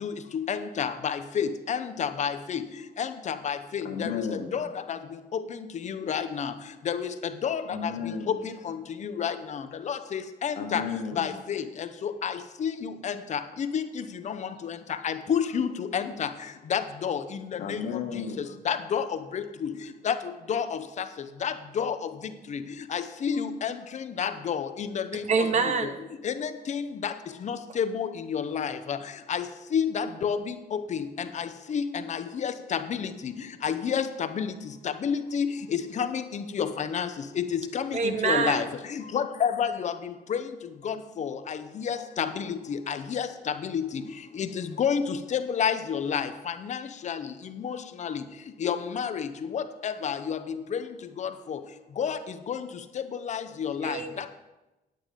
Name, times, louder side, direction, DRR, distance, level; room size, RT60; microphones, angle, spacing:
voice 1, 0.0-2.6 3.0-4.2 4.5-4.7 5.3-5.4 5.8-6.5 6.9-7.1 7.4-7.9 8.3-8.4 8.7-8.8 9.0-9.6 9.9-10.8 11.2-12.3 12.6-14.4 14.7-14.8 15.0-16.3 16.7-17.2 17.7-17.8 18.7-19.0 19.3-19.7 20.1-20.2 20.5-20.6 21.4-21.9 22.9-23.7 24.2-25.2 26.2-27.1 27.4-29.0 29.3-29.5 29.7-31.0 31.4-31.5 31.7-31.8 32.1-33.1 33.6-34.0 34.4-34.5 35.0-37.1 37.4-38.7 39.1-39.9 40.3-40.4 40.8-41.6 41.8-42.5 42.9-43.3 43.6-43.9 44.4-46.3 46.7-46.8 47.0-47.2 47.6-48.1 48.6-49.3 49.5-50.4 51.2-51.6 52.0-52.2 52.5-52.6 53.3-54.0, left 7 dB, 50° left, 10 dB, 0.8 m, -29 dB
voice 2, 3.8-4.6 7.7-8.4 10.6-11.3 17.5-18.5, left 6 dB, 80° left, 3 dB, 1.6 m, -33 dB
voice 3, 25.3-26.0 37.9-38.6 53.8-54.3, right 5 dB, 45° right, 9 dB, 0.9 m, -26 dB
9.2 x 9.0 x 5.2 m, 1.0 s
cardioid pair, 115°, 16 cm